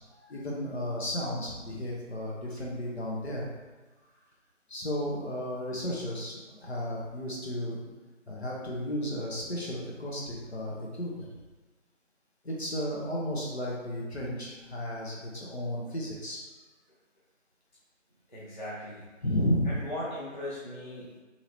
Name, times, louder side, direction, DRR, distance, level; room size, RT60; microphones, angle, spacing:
voice 1, 0.3-3.4 4.7-7.8 8.3-11.3 12.4-16.4 19.2-19.7, equal, 55° left, -4 dB, 0.9 m, -33 dB
voice 2, 18.3-19.1 19.6-21.2, left 1 dB, 35° left, -10 dB, 0.6 m, -39 dB
2.9 x 2.8 x 2.8 m, 1.2 s
figure-of-eight pair, 165°, 39 cm